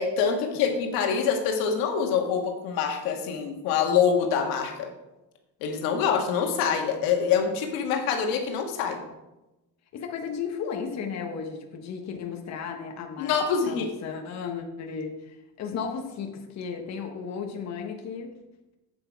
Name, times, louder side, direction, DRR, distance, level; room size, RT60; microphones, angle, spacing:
voice 1, 0.0-4.9 5.6-9.0 13.2-13.9, left 6 dB, 90° left, 3 dB, 1.7 m, -25 dB
voice 2, 9.9-13.4 13.7-18.3, left 6 dB, 50° left, 3 dB, 1.3 m, -34 dB
8.2 x 7.8 x 4.6 m, 0.98 s
cardioid pair, 115°, 35 cm